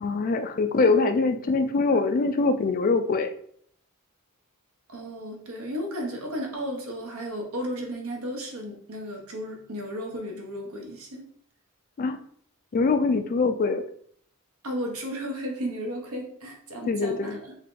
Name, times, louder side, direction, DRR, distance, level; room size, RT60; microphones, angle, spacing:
voice 1, 0.0-3.3 12.0-12.2 12.7-13.8 16.9-17.4, left 3 dB, 40° left, 8 dB, 0.3 m, -23 dB
voice 2, 4.9-11.3 14.6-17.6, equal, 70° right, 1 dB, 1.0 m, -34 dB
3.6 x 2.8 x 3.7 m, 0.63 s
head